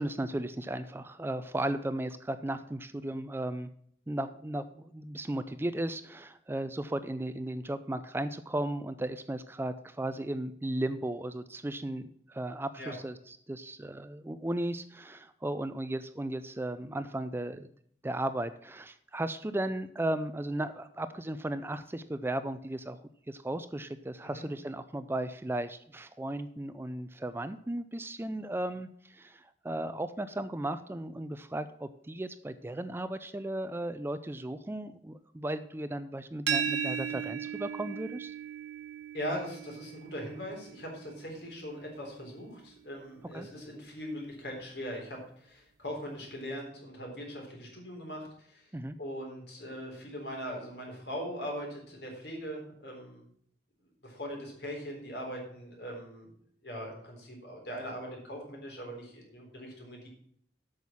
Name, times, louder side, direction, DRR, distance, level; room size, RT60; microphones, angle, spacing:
voice 1, 0.0-3.7 4.1-17.7 18.0-23.0 23.3-38.3 43.3-43.5 48.7-49.0, right 1 dB, 15° right, 12 dB, 0.4 m, -35 dB
sound 1, 36.5-42.2, right 7 dB, 75° right, 0.9 m, -37 dB
voice 2, 39.1-48.7 49.0-53.2 54.0-56.3 56.6-60.1, equal, 65° left, 0 dB, 3.8 m, -40 dB
8.2 x 6.4 x 7.1 m, 0.65 s
head